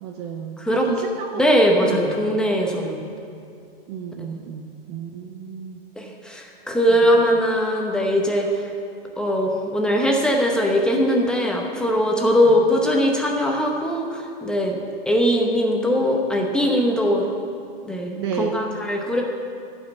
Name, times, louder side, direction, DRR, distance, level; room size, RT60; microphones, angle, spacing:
voice 1, 0.0-1.4 1.8-2.2 3.9-5.8 6.9-7.0 12.4-12.6 18.2-18.6, right 7 dB, 30° right, 4 dB, 0.5 m, -32 dB
voice 2, 1.4-3.0 6.0-8.7 9.2-17.3 17.8-19.2, equal, 5° left, 0 dB, 0.8 m, -21 dB
11.5 x 5.5 x 8.1 m, 2.4 s
hypercardioid pair, 145°, 29 cm